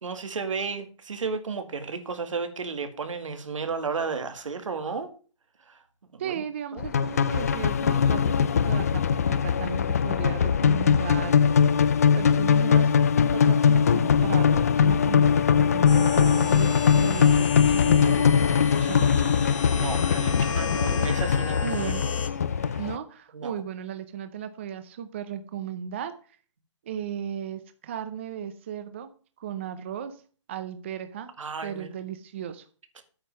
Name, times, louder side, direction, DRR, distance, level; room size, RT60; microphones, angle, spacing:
voice 1, 0.0-5.1 5.7-5.8 6.1-6.4 6.7-6.9 19.6-22.0 22.6-22.8 23.3-23.5 31.4-31.9, right 5 dB, 85° right, 8 dB, 2.0 m, -33 dB
voice 2, 6.2-11.3 12.1-12.9 13.3-18.2 18.8-19.1 21.6-22.1 22.8-26.1 26.8-29.1 29.4-30.2 30.5-31.3 31.6-32.7, right 9 dB, 25° right, 10 dB, 0.5 m, -35 dB
sound 1, 6.8-23.0, left 7 dB, 30° left, 0.4 m, -21 dB
sound 2, 15.9-22.3, left 5 dB, 85° left, 2.0 m, -35 dB
8.7 x 5.4 x 7.3 m, 0.40 s
hypercardioid pair, 175°, 16 cm